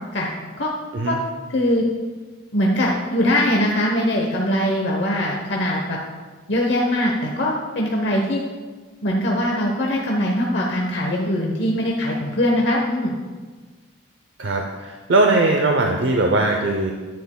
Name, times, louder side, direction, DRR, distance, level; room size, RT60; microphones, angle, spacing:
voice 1, 1.5-1.8 2.5-6.0 6.5-8.4 9.0-13.2, left 1 dB, 65° left, -2 dB, 0.9 m, -21 dB
voice 2, 14.4-16.9, right 2 dB, 80° right, 2 dB, 0.6 m, -19 dB
10.0 x 9.4 x 2.2 m, 1.4 s
head